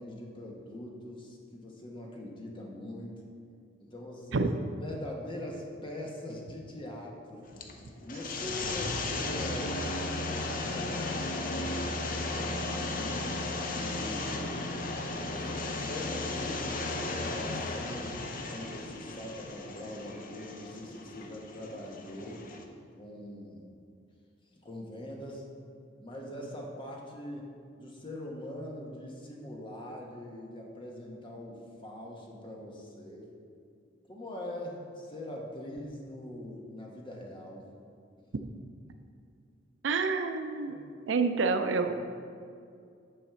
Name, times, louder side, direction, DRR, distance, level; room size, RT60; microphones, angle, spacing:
voice 1, 0.0-3.2 3.8-4.5 4.8-7.6 8.0-9.9 10.7-11.7 12.2-13.3 13.7-14.7 15.2-18.2 18.5-22.4 23.0-23.7 24.6-25.5 26.0-27.5 27.8-33.3 34.1-37.7 38.9-39.0 40.7-40.8 41.9-42.0, left 1 dB, 25° left, -1 dB, 1.2 m, -42 dB
sound 1, 7.4-22.6, left 2 dB, 45° left, 0.7 m, -35 dB
voice 2, 39.8-40.7 41.1-41.9, right 4 dB, 75° right, 7 dB, 0.5 m, -28 dB
9.0 x 4.2 x 6.7 m, 2.3 s
head